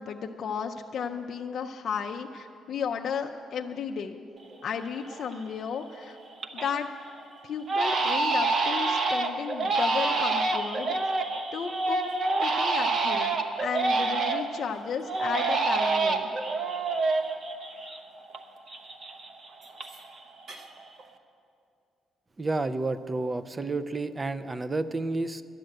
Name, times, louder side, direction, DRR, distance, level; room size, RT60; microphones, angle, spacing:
voice 1, 0.0-4.2 4.6-6.2 6.5-6.9 7.4-10.9 11.5-12.0 12.4-16.3, left 6 dB, 45° left, 2 dB, 0.4 m, -34 dB
Crying sobbing, 4.5-4.6 5.1-5.5 5.9-6.8 7.1-7.2 7.7-14.6 15.1-18.4 18.7-20.2 20.4-21.0, right 3 dB, 40° right, 0.7 m, -27 dB
voice 2, 22.4-25.4, right 2 dB, 15° right, 13 dB, 0.4 m, -30 dB
12.0 x 7.7 x 9.0 m, 2.5 s
cardioid pair, 165°, 0 cm